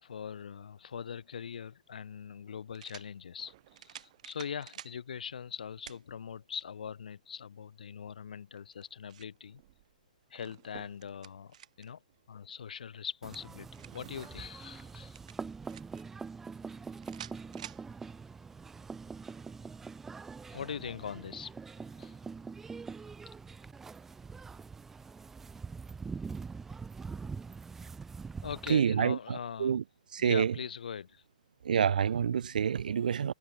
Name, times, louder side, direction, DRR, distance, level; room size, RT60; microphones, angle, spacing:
voice 1, 0.0-9.6 10.3-12.0 12.3-15.2 20.5-21.5 22.0-22.2 28.4-29.8 30.2-31.2, left 7 dB, 75° left, 3.1 m, -42 dB
sound 1, 1.5-1.6 2.7-3.1 3.8-5.0 5.9-6.0 6.6-6.7 8.6-9.4 10.7-11.9 13.1-14.1 15.1-16.0 17.0-17.9, right 10 dB, 55° right, 2.1 m, -49 dB
sound 2, 3.4-5.0 7.9-8.2 9.2-13.0 13.5-15.6 16.1-16.2 16.6-17.1, right 18 dB, 35° right, 6.5 m, -59 dB
sound 3, 13.2-28.7, right 5 dB, 5° right, 0.6 m, -44 dB
voice 2, 28.7-29.8 30.1-30.5 31.6-33.3, right 7 dB, 70° right, 1.4 m, -28 dB
hypercardioid pair, 160°, 5 cm